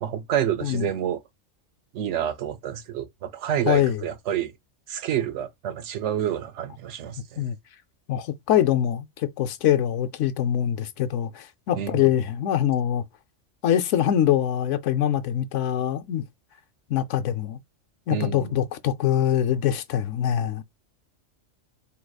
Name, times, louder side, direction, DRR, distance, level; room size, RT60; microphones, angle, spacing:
voice 1, 0.0-1.2 1.9-4.5 4.9-7.4 11.8-12.1 18.1-18.5, right 10 dB, 75° right, 0.9 m, -28 dB
voice 2, 3.7-4.0 7.4-7.6 8.1-13.0 13.6-16.2 16.9-17.6 18.1-20.6, left 10 dB, 80° left, 0.9 m, -24 dB
4.7 x 3.1 x 2.3 m
omnidirectional pair, 1.3 m